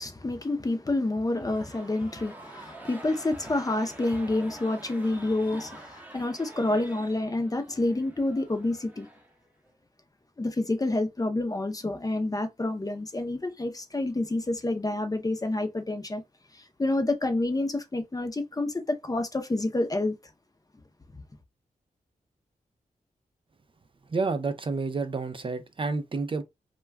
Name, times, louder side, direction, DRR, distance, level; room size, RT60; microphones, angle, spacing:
voice 1, 0.0-9.1 10.4-16.2 16.8-20.1, left 2 dB, 25° left, 0.6 m, -28 dB
sound 1, 1.3-9.7, right 2 dB, 10° right, 0.7 m, -47 dB
voice 2, 24.1-26.4, right 4 dB, 35° right, 0.4 m, -29 dB
2.2 x 2.2 x 3.3 m
cardioid pair, 75°, 15 cm